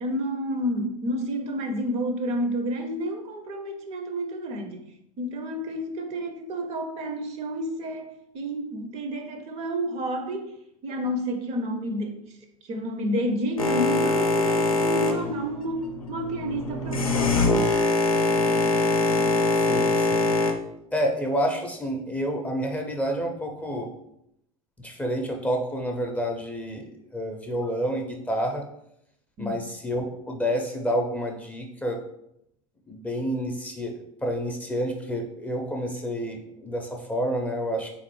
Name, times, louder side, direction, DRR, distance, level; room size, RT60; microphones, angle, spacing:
voice 1, 0.0-4.8 5.2-10.5 10.8-12.2 12.7-17.7 29.4-29.7, equal, 40° right, 5 dB, 0.6 m, -30 dB
Boat Water vehicle, 13.6-20.5, left 2 dB, 85° left, 0.6 m, -23 dB
voice 2, 19.6-20.3 20.9-23.9 24.8-26.9 27.1-28.6 29.4-32.0 32.9-33.9 34.2-37.9, equal, 10° left, 2 dB, 0.5 m, -29 dB
3.8 x 3.1 x 3.1 m, 0.77 s
figure-of-eight pair, 80°, 18 cm